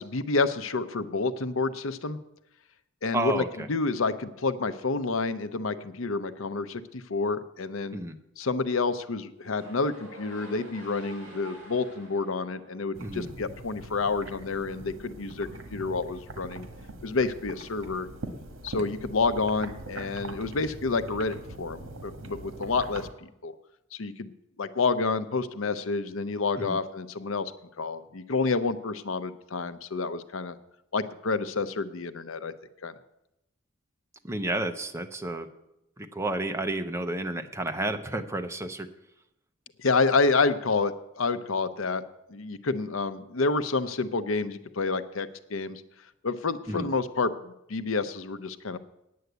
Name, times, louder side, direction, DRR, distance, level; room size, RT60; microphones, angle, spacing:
voice 1, 0.0-2.2 3.0-3.4 3.7-8.0 8.4-16.7 17.0-18.1 18.6-23.5 23.9-24.3 24.6-27.5 27.8-30.6 30.9-32.5 32.8-32.9 39.8-42.0 42.3-45.8 46.2-48.8, left 4 dB, 80° left, 12 dB, 0.7 m, -29 dB
voice 2, 3.1-3.7 7.9-8.2 13.0-13.3 26.6-26.8 34.2-35.5 36.0-38.9 46.7-46.9, right 2 dB, 15° right, 7 dB, 0.7 m, -31 dB
sound 1, 9.3-13.5, right 1 dB, 40° right, 4.7 m, -48 dB
sound 2, 12.9-23.1, right 2 dB, 75° right, 1.5 m, -42 dB
9.4 x 8.0 x 8.0 m, 0.85 s
head